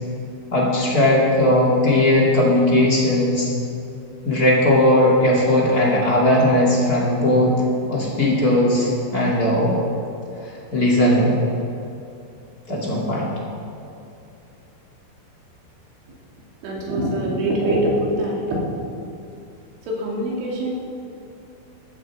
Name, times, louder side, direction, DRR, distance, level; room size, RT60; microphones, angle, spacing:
voice 1, 0.5-3.5 4.2-7.5 7.9-9.8 10.4-11.4 12.7-13.3, left 1 dB, 30° left, -5 dB, 1.9 m, -18 dB
voice 2, 16.6-18.6 19.9-20.7, right 1 dB, 90° right, -2 dB, 4.9 m, -23 dB
14.5 x 13.5 x 4.8 m, 2.7 s
omnidirectional pair, 5.3 m